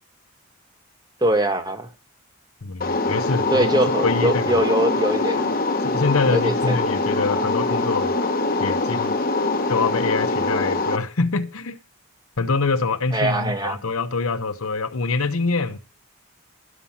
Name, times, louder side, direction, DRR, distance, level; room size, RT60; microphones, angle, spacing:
voice 1, 1.2-1.9 3.5-5.5 6.3-6.8 13.1-13.8, right 1 dB, 20° right, 1.1 m, -22 dB
voice 2, 2.6-3.7 4.0-4.6 5.8-8.1 8.6-9.2 9.7-11.8 12.4-15.8, left 4 dB, 80° left, 0.9 m, -25 dB
sound 1, 2.8-11.0, left 2 dB, 40° left, 1.1 m, -23 dB
12.5 x 5.7 x 7.3 m
head